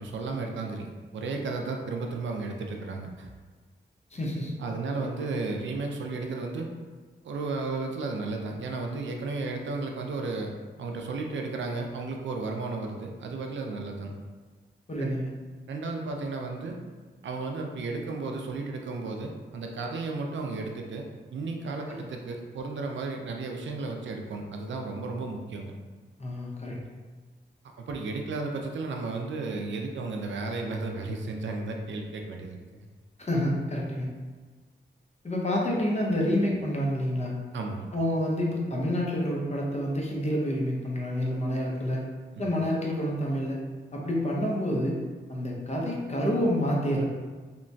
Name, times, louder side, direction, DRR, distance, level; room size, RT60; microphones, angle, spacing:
voice 1, 0.0-3.3 4.6-6.7 7.2-14.1 15.0-15.1 15.7-16.8 17.2-21.0 21.3-25.7 27.8-32.9 37.5-37.9, right 3 dB, 75° right, 2 dB, 0.4 m, -33 dB
voice 2, 4.1-4.5 14.9-15.3 21.9-22.0 26.2-26.8 33.2-34.1 35.2-37.3 37.9-42.0 42.4-43.6 43.9-45.0 45.3-47.0, equal, 35° left, -2 dB, 0.7 m, -28 dB
2.9 x 2.2 x 2.6 m, 1.4 s
cardioid pair, 55°, 19 cm